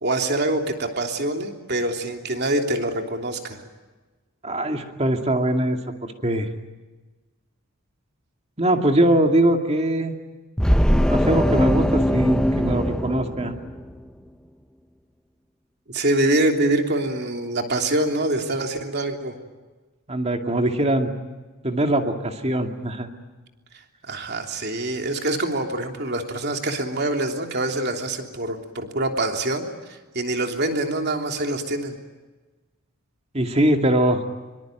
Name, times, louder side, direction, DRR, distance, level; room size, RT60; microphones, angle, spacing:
voice 1, 0.0-3.6 15.9-19.4 24.1-32.0, right 1 dB, 50° right, 4 dB, 3.2 m, -25 dB
voice 2, 4.4-6.5 8.6-10.2 11.1-13.5 20.1-21.1 21.6-23.1 33.3-34.2, right 1 dB, 30° right, 5 dB, 2.3 m, -22 dB
sound 1, 10.6-14.0, equal, 5° left, 0.9 m, -21 dB
25.0 x 24.0 x 9.2 m, 1.2 s
head